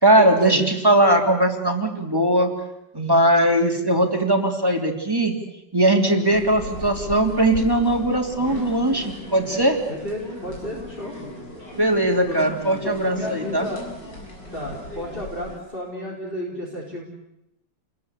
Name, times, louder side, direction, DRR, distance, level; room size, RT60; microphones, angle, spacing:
voice 1, 0.0-2.5 2.9-5.3 5.7-9.8 11.8-13.7, right 1 dB, 10° right, 2 dB, 3.3 m, -19 dB
sound 1, 6.3-15.6, left 1 dB, 75° left, 7.7 m, -38 dB
voice 2, 9.9-11.1 12.3-12.5 12.8-13.8 14.5-17.0, left 1 dB, 30° left, -3 dB, 4.6 m, -32 dB
29.5 x 21.5 x 8.4 m, 0.86 s
omnidirectional pair, 1.9 m